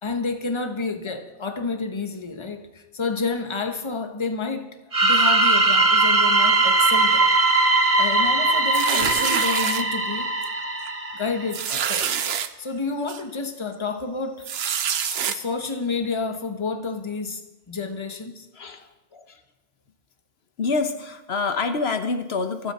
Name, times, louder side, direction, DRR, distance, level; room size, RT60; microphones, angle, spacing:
voice 1, 0.0-4.7 5.0-7.7 8.0-10.3 11.1-12.3 12.6-14.5 15.3-17.4 17.7-18.5 19.1-19.2, left 4 dB, 30° left, 7 dB, 1.2 m, -30 dB
sound 1, 4.9-11.6, right 2 dB, 35° right, 1.3 m, -20 dB
sound 2, 8.7-9.8 10.4-10.6 10.9-11.0 11.5-12.5 13.1-13.2 14.4-15.4, right 8 dB, 75° right, 1.0 m, -26 dB
voice 2, 18.6-18.9 20.6-22.7, left 4 dB, 75° left, 8 dB, 1.3 m, -26 dB
26.5 x 9.4 x 4.2 m, 1.0 s
omnidirectional pair, 1.1 m